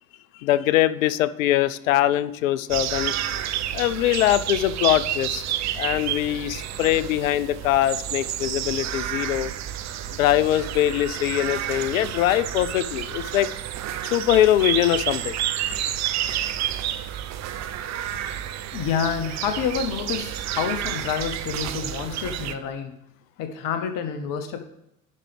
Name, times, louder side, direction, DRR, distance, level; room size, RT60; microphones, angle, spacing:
voice 1, 0.4-3.2 3.7-5.4 5.8-9.5 10.1-13.5 14.1-15.4, left 13 dB, 75° left, 16 dB, 0.5 m, -22 dB
sound 1, 2.7-22.5, right 11 dB, 40° right, 0.6 m, -30 dB
voice 2, 18.7-22.9 23.4-24.6, left 7 dB, 50° left, 8 dB, 0.9 m, -28 dB
11.0 x 5.1 x 3.4 m, 0.85 s
figure-of-eight pair, 65°, 41 cm